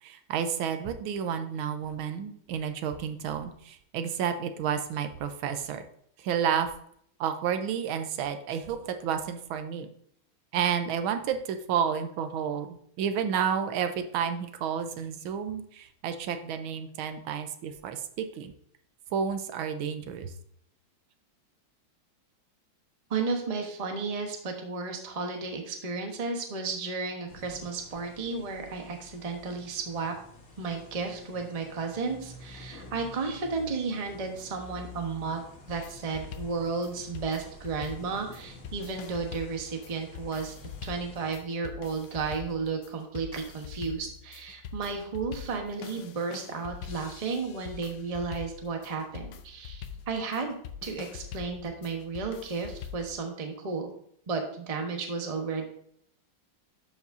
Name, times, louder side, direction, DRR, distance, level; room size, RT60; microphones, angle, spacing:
voice 1, 0.0-5.8 6.2-6.7 7.2-9.9 10.5-18.5 19.1-20.3, right 8 dB, 85° right, 8 dB, 1.5 m, -31 dB
voice 2, 23.1-30.1 30.6-40.6 40.8-50.5 50.8-53.9 54.3-55.6, right 4 dB, 30° right, 3 dB, 0.7 m, -33 dB
sound 1, 27.3-41.4, left 3 dB, 45° left, 1.7 m, -49 dB
sound 2, 35.7-53.2, left 7 dB, 70° left, 1.2 m, -43 dB
12.0 x 5.0 x 2.6 m, 0.66 s
omnidirectional pair, 2.2 m